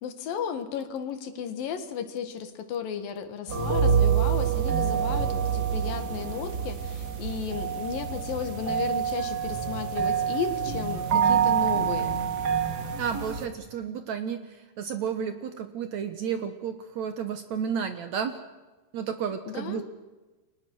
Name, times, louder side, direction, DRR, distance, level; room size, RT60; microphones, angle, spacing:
voice 1, 0.0-12.2 19.5-19.9, left 7 dB, 70° left, 9 dB, 3.2 m, -34 dB
sound 1, 3.5-13.5, right 7 dB, 40° right, 1.6 m, -26 dB
voice 2, 13.0-18.4 18.9-19.9, right 7 dB, 65° right, 8 dB, 2.0 m, -32 dB
29.5 x 24.0 x 6.3 m, 1.2 s
omnidirectional pair, 4.3 m